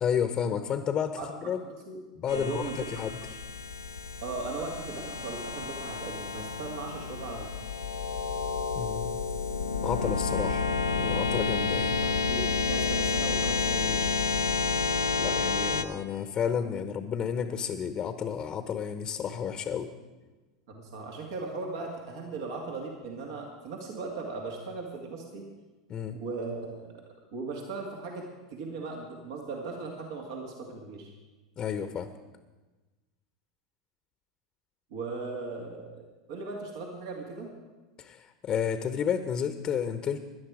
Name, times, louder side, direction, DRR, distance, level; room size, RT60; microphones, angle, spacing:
voice 1, 0.0-1.6 2.2-3.2 8.7-9.2 9.8-10.7 10.9-12.0 15.2-19.9 25.9-26.2 31.6-32.1 38.0-40.2, left 8 dB, 35° left, 10 dB, 0.9 m, -31 dB
voice 2, 1.6-2.0 2.3-3.3 4.2-7.5 12.0-14.1 20.7-25.5 26.1-26.9 27.3-31.1 34.9-36.0 36.3-37.5, right 3 dB, 65° right, 0 dB, 2.1 m, -38 dB
sound 1, 2.3-15.8, left 4 dB, 90° left, 0.7 m, -30 dB
17.5 x 11.5 x 4.9 m, 1.2 s
hypercardioid pair, 90°, 2 cm